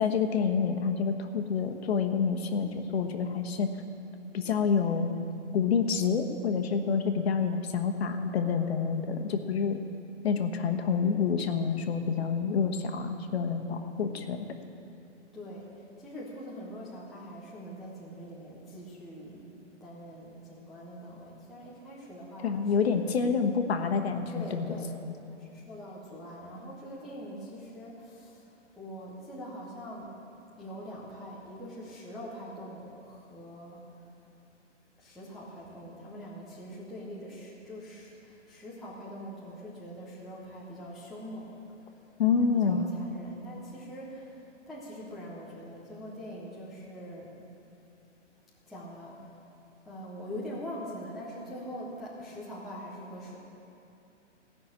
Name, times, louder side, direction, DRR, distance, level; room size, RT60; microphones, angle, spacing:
voice 1, 0.0-3.7 4.3-5.2 5.5-9.8 10.2-14.5 22.4-24.7 42.2-42.8, left 6 dB, 55° left, 6 dB, 1.2 m, -28 dB
voice 2, 15.3-15.7 16.0-22.9 24.3-24.9 25.4-28.5 28.8-30.2 30.6-33.8 35.0-41.6 42.2-47.3 48.7-49.2 49.9-53.4, equal, ahead, -9 dB, 0.5 m, -43 dB
16.0 x 6.2 x 8.6 m, 2.8 s
hypercardioid pair, 155°, 36 cm